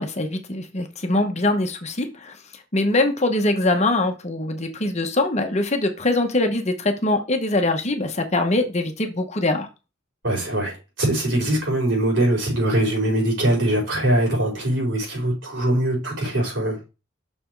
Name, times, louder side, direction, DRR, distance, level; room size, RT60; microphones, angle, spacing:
voice 1, 0.0-2.4 2.7-9.7, left 2 dB, 35° left, 5 dB, 1.1 m, -23 dB
voice 2, 10.2-16.8, right 1 dB, 65° right, -2 dB, 4.8 m, -22 dB
6.4 x 6.0 x 4.6 m, 0.29 s
head